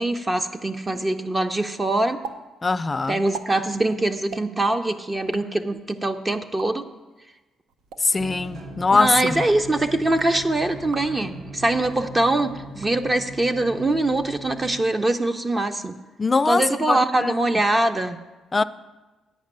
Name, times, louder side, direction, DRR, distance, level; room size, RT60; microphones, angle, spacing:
voice 1, 0.0-2.2 3.1-6.8 8.9-16.0 16.5-18.2, right 2 dB, 25° right, 0.5 m, -23 dB
sound 1, 2.2-2.4 2.6-2.7 3.2-3.5 4.2-4.4 5.1-5.4 6.4-6.7 7.7-8.0 9.1-9.5 10.0-10.3 10.8-11.1 11.7-12.0 12.7-13.4, right 5 dB, 85° right, 0.6 m, -39 dB
voice 2, 2.6-3.2 8.0-9.4 16.2-17.3 18.5-18.6, left 4 dB, 25° left, 0.3 m, -22 dB
sound 2, 8.2-14.8, right 1 dB, 60° right, 1.3 m, -39 dB
9.3 x 5.2 x 8.0 m
cardioid pair, 90°, 0 cm